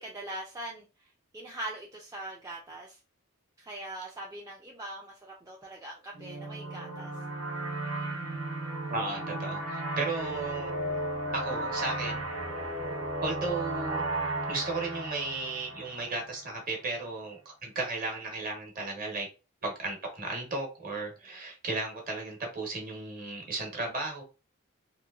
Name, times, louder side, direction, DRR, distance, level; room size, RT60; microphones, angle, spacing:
voice 1, 0.0-3.0 3.6-7.1 12.6-12.7 21.3-21.4, right 1 dB, 15° right, 0.4 m, -42 dB
sound 1, 6.1-16.5, right 2 dB, 90° right, 1.1 m, -35 dB
voice 2, 8.9-10.7 11.3-12.3 13.2-14.0 14.5-19.3 19.6-24.2, right 3 dB, 40° right, 1.0 m, -35 dB
2.9 x 2.6 x 2.3 m
head